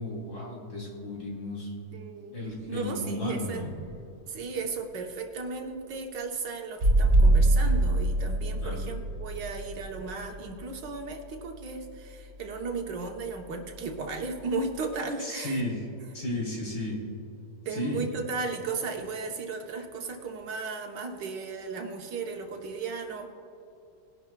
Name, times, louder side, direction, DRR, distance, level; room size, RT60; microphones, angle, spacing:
voice 1, 0.0-1.7 2.3-3.7 8.6-8.8 15.2-15.8 16.1-17.0 17.7-18.0, left 1 dB, 65° left, -5 dB, 3.9 m, -34 dB
voice 2, 1.9-2.4 2.7-3.6 4.3-15.6 17.6-23.3, right 4 dB, 80° right, 3 dB, 1.7 m, -35 dB
sound 1, 6.8-11.4 13.2-13.3, right 2 dB, 55° right, 2.2 m, -24 dB
20.0 x 11.0 x 2.3 m, 2.8 s
omnidirectional pair, 1.9 m